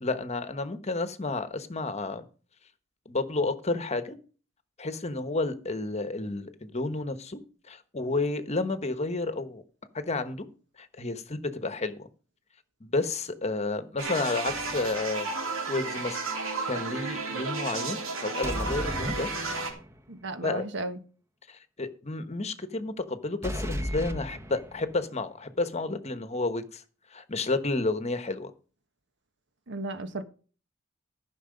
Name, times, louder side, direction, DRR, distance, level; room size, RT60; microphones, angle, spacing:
voice 1, 0.0-2.3 3.0-4.2 4.8-7.4 7.7-9.6 9.9-10.5 10.8-12.1 12.8-16.2 16.6-19.3 20.4-20.7 21.5-26.8 27.1-28.5, left 3 dB, 35° left, 1.1 m, -31 dB
sound 1, 14.0-19.7, right 3 dB, 80° right, 3.4 m, -33 dB
sound 2, 14.5-15.1 18.4-20.0 23.4-25.0, equal, 15° right, 1.0 m, -35 dB
voice 2, 20.1-21.0 29.7-30.2, right 2 dB, 60° right, 1.3 m, -34 dB
14.5 x 6.3 x 5.2 m
head